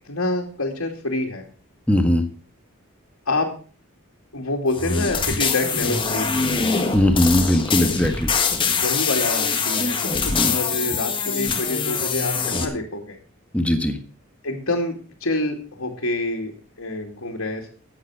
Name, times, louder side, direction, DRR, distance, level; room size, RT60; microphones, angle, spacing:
voice 1, 0.0-1.4 3.3-3.5 4.3-6.4 8.8-13.2 14.4-17.7, left 2 dB, 70° left, -2 dB, 2.4 m, -27 dB
voice 2, 1.9-2.2 6.9-8.3 10.3-10.5 13.5-14.0, left 1 dB, 5° left, 6 dB, 1.5 m, -19 dB
sound 1, 4.7-12.7, left 5 dB, 25° left, 1.6 m, -23 dB
14.0 x 9.0 x 4.8 m, 0.40 s
head